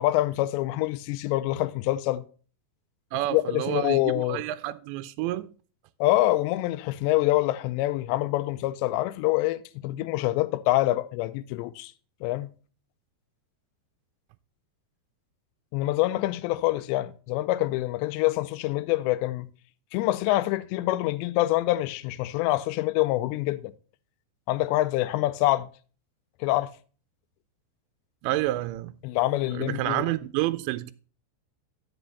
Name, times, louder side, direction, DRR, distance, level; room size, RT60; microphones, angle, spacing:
voice 1, 0.0-2.2 3.3-4.4 6.0-11.9 12.2-12.5 15.7-19.5 19.9-23.7 24.5-25.7 26.4-26.7 29.0-30.1, left 17 dB, 80° left, 2.7 m, -26 dB
voice 2, 3.1-5.5 28.2-29.0 29.5-30.9, right 16 dB, 85° right, 2.7 m, -29 dB
10.0 x 6.8 x 4.0 m
omnidirectional pair, 5.3 m